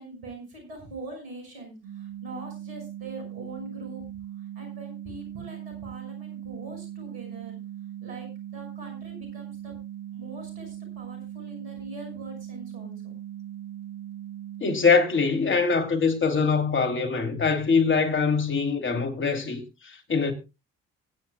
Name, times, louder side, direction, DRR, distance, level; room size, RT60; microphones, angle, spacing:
voice 1, 0.0-4.0 4.6-7.6 8.0-9.7 10.1-13.1, right 2 dB, 90° right, 5.9 m, -42 dB
sound 1, 1.8-14.6, right 11 dB, 60° right, 5.0 m, -39 dB
voice 2, 14.6-20.3, left 4 dB, 40° left, 3.0 m, -23 dB
23.5 x 9.9 x 2.3 m
hypercardioid pair, 55°, 30 cm